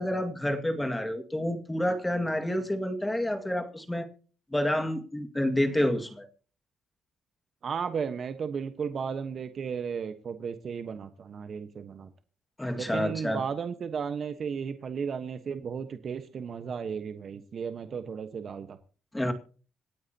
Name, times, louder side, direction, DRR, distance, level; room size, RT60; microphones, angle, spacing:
voice 1, 0.0-4.1 4.5-6.3 12.6-13.4 19.1-19.3, left 1 dB, 10° left, 6 dB, 2.0 m, -29 dB
voice 2, 7.6-12.1 12.8-18.8, right 6 dB, 50° right, 9 dB, 1.3 m, -34 dB
26.5 x 9.2 x 2.9 m, 0.40 s
cardioid pair, 90°, 0 cm